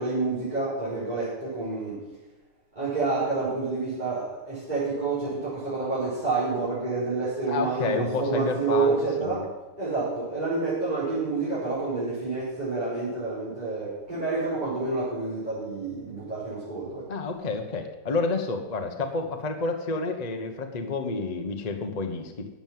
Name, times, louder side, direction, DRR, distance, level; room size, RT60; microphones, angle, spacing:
voice 1, 0.0-2.0 2.7-9.4 9.8-17.0, right 3 dB, 20° right, -11 dB, 5.0 m, -28 dB
voice 2, 7.5-9.5 17.1-22.5, left 3 dB, 30° left, 5 dB, 0.7 m, -30 dB
11.5 x 7.9 x 7.6 m, 1.1 s
omnidirectional pair, 2.4 m